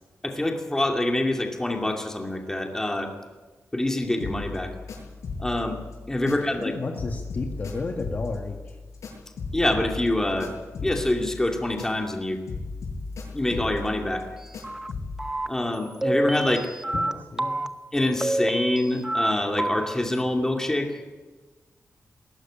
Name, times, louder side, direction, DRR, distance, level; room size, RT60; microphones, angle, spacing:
voice 1, 0.2-3.1 3.7-4.7 5.4-5.8 6.1-6.8 9.5-10.5 10.8-12.4 13.3-14.3 15.5-16.7 17.9-21.0, left 1 dB, 10° left, 2 dB, 2.5 m, -26 dB
sound 1, 4.2-6.7 6.9-12.2 12.5-15.3, left 4 dB, 90° left, 7.0 m, -37 dB
voice 2, 6.2-8.8 16.9-17.6, left 3 dB, 35° left, 3 dB, 1.7 m, -32 dB
sound 2, 14.6-14.9 15.2-15.5 16.0-17.1 17.4-17.7 18.2-19.3 19.6-19.9, right 1 dB, 10° right, 0.8 m, -27 dB
20.5 x 18.0 x 8.8 m, 1.2 s
wide cardioid pair, 180°, 5 cm